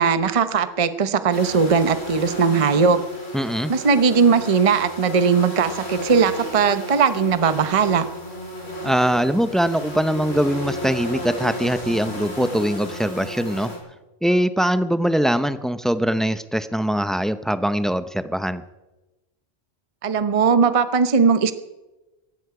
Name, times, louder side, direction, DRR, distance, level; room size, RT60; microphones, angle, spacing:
voice 1, 0.0-3.0 3.7-8.1 20.0-21.5, right 5 dB, 35° right, 11 dB, 0.8 m, -19 dB
sound 1, 1.3-13.8, equal, 70° left, 3.9 m, -33 dB
voice 2, 3.3-3.7 8.8-13.7 14.2-18.6, equal, ahead, 12 dB, 0.3 m, -22 dB
18.0 x 15.0 x 4.9 m, 1.1 s
omnidirectional pair, 1.1 m